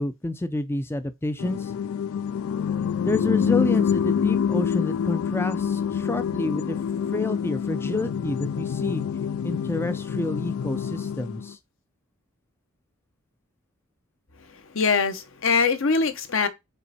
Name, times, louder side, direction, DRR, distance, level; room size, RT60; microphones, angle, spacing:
voice 1, 0.0-1.7 3.1-6.8 7.1-9.0 9.4-11.6, left 2 dB, 10° left, 0.4 m, -29 dB
sound 1, 1.4-11.5, left 7 dB, 80° left, 0.3 m, -26 dB
voice 2, 14.5-16.5, left 4 dB, 65° left, 1.0 m, -23 dB
5.5 x 4.3 x 4.1 m
head